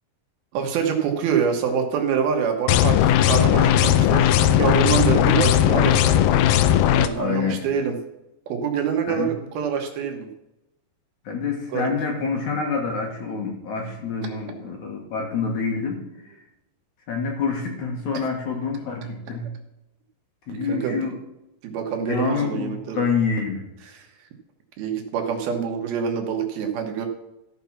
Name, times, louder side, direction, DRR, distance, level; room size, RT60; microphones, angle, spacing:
voice 1, 0.5-6.3 6.9-8.0 8.5-10.3 11.7-11.9 20.5-21.0 21.6-23.0 23.9-24.1 24.8-27.1, right 7 dB, 70° right, 3 dB, 3.1 m, -26 dB
sound 1, 2.7-7.1, left 11 dB, 80° left, 2.3 m, -17 dB
voice 2, 7.2-7.6 9.1-9.3 11.2-16.0 16.3-16.4 17.1-19.5 20.5-21.2 22.0-23.6, left 5 dB, 55° left, 1 dB, 2.6 m, -27 dB
14.5 x 5.9 x 5.8 m, 0.89 s
omnidirectional pair, 4.6 m